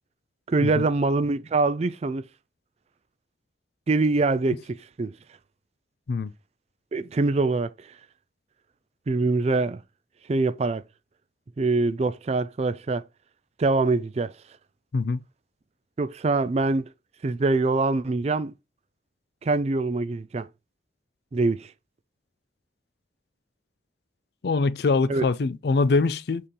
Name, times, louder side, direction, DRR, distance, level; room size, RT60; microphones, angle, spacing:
voice 1, 0.5-2.2 3.9-5.1 6.9-7.9 9.1-9.8 10.3-10.8 11.6-13.0 13.6-14.3 16.0-16.9 17.2-18.5 19.4-20.5 21.3-21.7 25.1-25.2, right 3 dB, 35° right, 0.4 m, -24 dB
voice 2, 24.4-26.4, left 3 dB, 60° left, 0.4 m, -23 dB
6.8 x 4.2 x 3.7 m
head